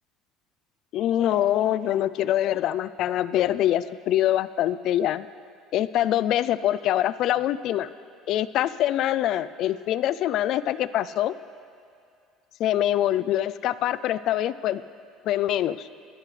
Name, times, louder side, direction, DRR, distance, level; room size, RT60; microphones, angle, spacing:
voice 1, 0.9-5.3 5.7-7.9 8.3-11.3 12.6-14.8 15.3-15.9, left 12 dB, 50° left, 16 dB, 0.3 m, -24 dB
21.0 x 12.5 x 3.3 m, 2.4 s
cardioid pair, 160°, 0 cm